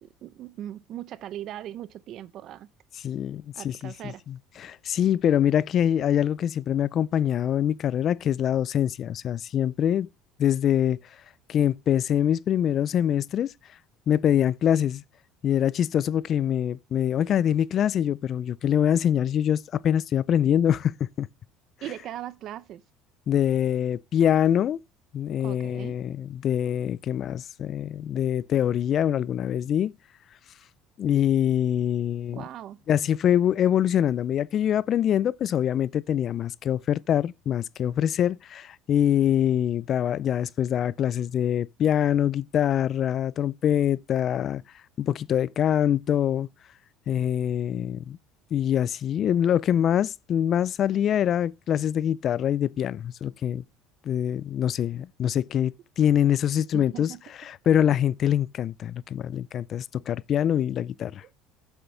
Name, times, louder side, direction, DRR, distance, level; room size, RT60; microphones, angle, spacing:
voice 1, 0.0-2.7 3.5-4.2 21.8-22.8 25.4-26.0 32.3-32.8 56.7-57.2 61.2-61.3, right 12 dB, 55° right, 0.6 m, -39 dB
voice 2, 3.0-10.1 10.4-11.0 11.5-13.5 14.1-15.0 15.4-21.3 23.3-24.8 25.1-29.9 31.0-32.4 32.9-44.6 45.0-46.5 47.1-48.2 48.5-53.6 54.1-57.1 57.4-61.2, left 10 dB, 45° left, 0.3 m, -24 dB
8.1 x 7.9 x 3.2 m
supercardioid pair, 100°, 0 cm